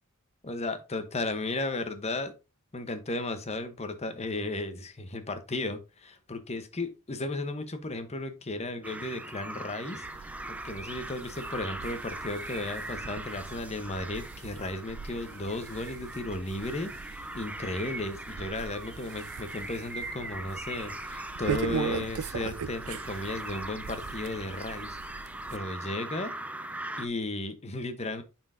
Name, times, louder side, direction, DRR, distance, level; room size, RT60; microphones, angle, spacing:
voice 1, 0.4-2.3 2.7-25.0 25.5-26.3 27.0-28.2, left 2 dB, 30° left, 0.9 m, -35 dB
sound 1, 8.8-27.1, right 1 dB, 5° right, 0.5 m, -40 dB
sound 2, 10.0-25.6, right 6 dB, 75° right, 0.4 m, -40 dB
9.4 x 4.4 x 2.6 m
head